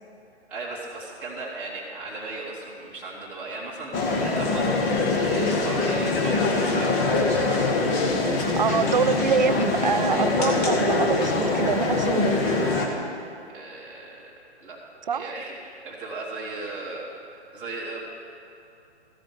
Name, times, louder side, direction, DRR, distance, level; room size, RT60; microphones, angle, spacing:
voice 1, 0.5-4.7 5.2-7.3 9.5-9.6 13.5-14.3 14.6-14.8 15.1-17.1 17.5-18.0, right 3 dB, 5° right, -10 dB, 1.1 m, -36 dB
sound 1, 3.9-12.9, left 3 dB, 15° left, 0.7 m, -23 dB
voice 2, 8.3-12.4 15.1-15.3, right 6 dB, 45° right, 13 dB, 0.4 m, -25 dB
13.5 x 5.0 x 7.5 m, 2.7 s
figure-of-eight pair, 135°, 34 cm